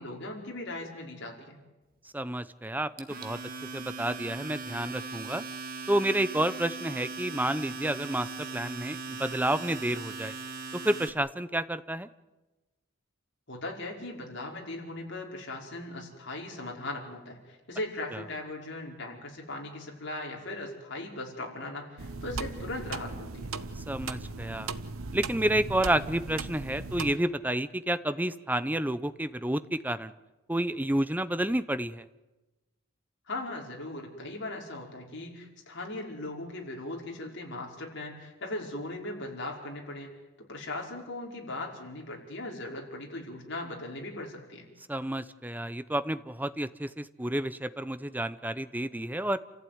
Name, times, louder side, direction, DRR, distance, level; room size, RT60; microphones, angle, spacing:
voice 1, 0.0-1.6 13.5-23.5 33.3-44.7, left 2 dB, 55° left, 0 dB, 5.1 m, -39 dB
voice 2, 2.1-3.4 3.7-5.4 5.9-10.3 10.7-12.1 18.1-18.2 23.8-24.7 25.1-30.1 30.5-32.1 44.9-49.4, right 1 dB, 10° right, 13 dB, 0.7 m, -30 dB
Domestic sounds home sounds, 3.0-11.1, right 4 dB, 45° right, 1.8 m, -39 dB
sound 1, 22.0-27.2, right 3 dB, 85° right, 1.1 m, -37 dB
28.5 x 15.0 x 9.5 m, 1.1 s
head